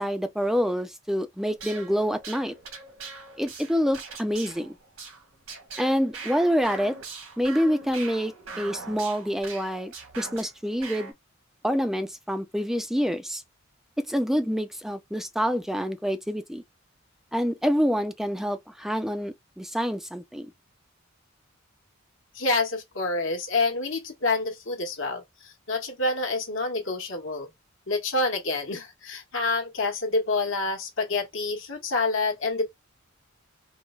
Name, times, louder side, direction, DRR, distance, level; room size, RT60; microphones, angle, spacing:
voice 1, 0.0-2.5 3.4-4.7 5.8-7.0 7.4-11.1 11.6-13.4 14.1-16.6 17.3-20.5, equal, ahead, 0.3 m, -27 dB
sound 1, 1.5-10.5 10.8-11.1, right 4 dB, 80° right, 1.4 m, -41 dB
voice 2, 22.3-27.5 27.9-32.6, left 3 dB, 65° left, 1.1 m, -27 dB
4.4 x 2.1 x 2.3 m
head